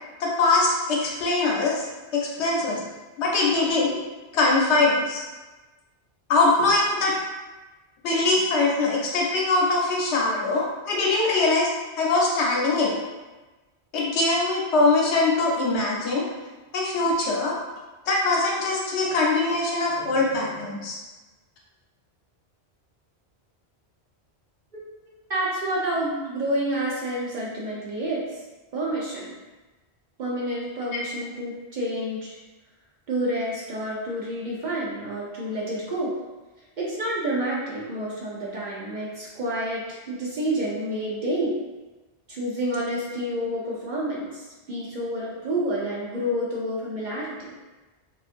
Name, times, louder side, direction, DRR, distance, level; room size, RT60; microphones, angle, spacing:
voice 1, 0.2-1.8 2.1-2.8 3.2-4.0 4.3-5.2 6.3-7.1 8.0-11.7 12.0-13.0 13.9-16.2 16.7-17.5 18.1-21.0, left 3 dB, 80° left, -3 dB, 0.9 m, -22 dB
voice 2, 25.3-28.4 28.7-29.3 30.2-32.4 33.1-36.1 36.8-41.6 42.3-47.5, right 1 dB, 55° right, -6 dB, 0.6 m, -29 dB
2.5 x 2.4 x 2.4 m, 1.2 s
omnidirectional pair, 1.1 m